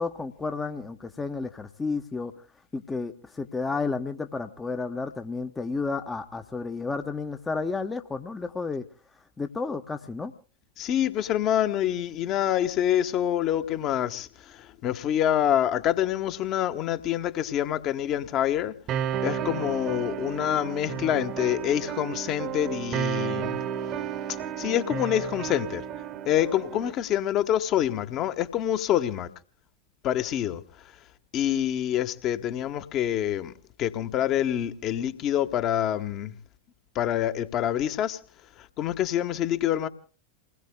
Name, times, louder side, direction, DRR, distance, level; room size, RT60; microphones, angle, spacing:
voice 1, 0.0-2.3 2.7-8.8 9.4-10.3, left 4 dB, 15° left, 0.9 m, -31 dB
voice 2, 10.8-14.3 14.8-18.7 19.2-23.6 24.6-25.8 26.3-29.3 30.0-30.6 31.3-33.5 33.8-36.3 36.9-38.2 38.8-39.9, left 11 dB, 35° left, 1.2 m, -26 dB
sound 1, 18.9-26.9, right 9 dB, 35° right, 1.1 m, -32 dB
29.0 x 20.0 x 2.2 m
figure-of-eight pair, 90°, 0 cm